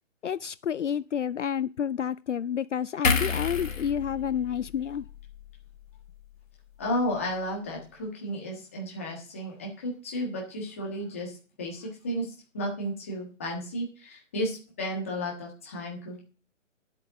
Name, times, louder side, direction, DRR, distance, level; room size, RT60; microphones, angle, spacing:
voice 1, 0.2-5.1, left 8 dB, 65° left, 0.5 m, -30 dB
sound 1, 3.0-6.4 6.8-6.9, left 5 dB, 90° left, 2.5 m, -31 dB
voice 2, 6.8-16.2, equal, 10° left, 1.5 m, -33 dB
10.0 x 8.0 x 4.9 m
hypercardioid pair, 180°, 39 cm